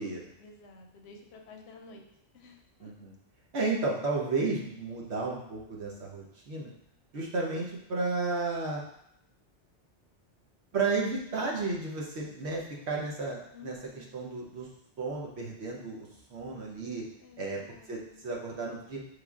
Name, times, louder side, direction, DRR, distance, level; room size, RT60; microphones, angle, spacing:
voice 1, 0.4-2.0 2.3-2.9 13.5-14.1 17.2-18.2, left 3 dB, 70° left, 2 dB, 0.8 m, -52 dB
voice 2, 2.8-3.1 3.5-6.7 7.1-8.8 10.7-14.7 15.0-17.0 17.4-17.6 17.9-19.0, right 3 dB, 65° right, -2 dB, 1.1 m, -33 dB
5.6 x 3.3 x 2.3 m, 0.74 s
omnidirectional pair, 1.2 m